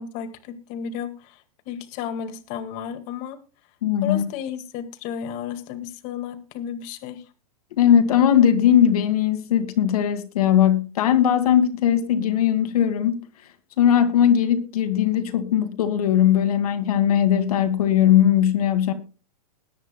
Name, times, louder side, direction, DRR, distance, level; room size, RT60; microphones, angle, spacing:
voice 1, 0.0-3.4 4.0-7.2, left 8 dB, 40° left, 1.8 m, -33 dB
voice 2, 3.8-4.2 7.7-13.2 13.8-18.9, left 10 dB, 70° left, 2.2 m, -19 dB
21.0 x 10.0 x 2.2 m
hypercardioid pair, 140°, 20 cm